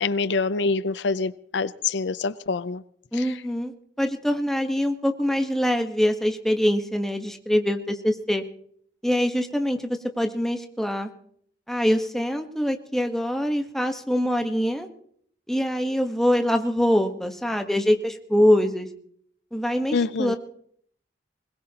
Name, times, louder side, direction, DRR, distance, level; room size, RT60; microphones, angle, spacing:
voice 1, 0.0-2.8 3.1-3.2 19.9-20.4, left 4 dB, 85° left, 16 dB, 0.5 m, -26 dB
voice 2, 3.1-3.7 4.0-8.4 9.0-11.1 11.7-14.9 15.5-18.9 19.5-20.4, equal, ahead, 5 dB, 1.1 m, -24 dB
21.0 x 20.5 x 2.9 m, 0.65 s
head